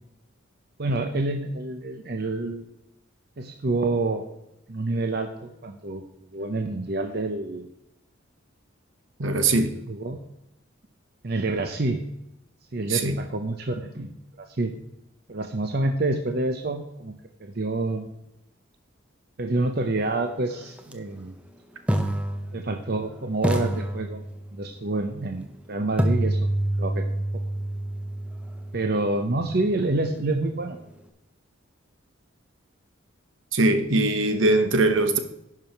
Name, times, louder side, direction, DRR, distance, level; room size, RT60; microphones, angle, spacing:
voice 1, 0.8-2.7 3.4-4.2 4.7-6.0 6.3-7.7 9.2-9.6 9.9-10.3 11.2-12.0 12.7-14.8 15.3-17.1 17.4-18.1 19.4-21.3 22.5-24.2 24.5-27.0 27.3-27.4 28.7-30.8, right 2 dB, 50° right, 5 dB, 0.7 m, -28 dB
voice 2, 9.2-9.7 12.9-13.1 33.5-35.2, right 2 dB, 70° right, 8 dB, 1.1 m, -21 dB
sound 1, 20.8-20.9 21.9-23.0 23.4-24.7 26.0-29.9, right 1 dB, 5° right, 0.7 m, -28 dB
10.5 x 4.8 x 5.8 m, 0.85 s
head